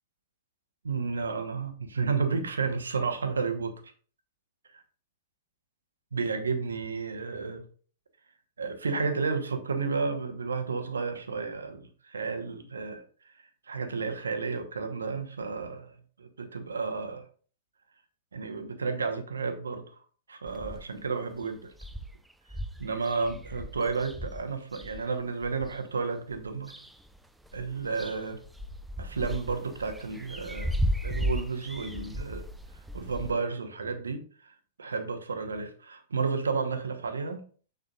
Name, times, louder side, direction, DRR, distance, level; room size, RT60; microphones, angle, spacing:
voice 1, 0.8-3.9 4.6-4.8 6.1-7.6 8.6-17.3 18.3-20.0 20.3-21.6 22.8-26.7 27.5-28.4 29.0-30.7 31.0-32.5 32.7-37.4, right 4 dB, 75° right, 6 dB, 1.0 m, -32 dB
sound 1, 20.5-21.1 21.4-21.5 21.7-25.8 26.3-27.2 27.4-33.3, equal, 5° right, 0.5 m, -35 dB
6.7 x 6.6 x 2.4 m, 0.42 s
figure-of-eight pair, 105°, 0 cm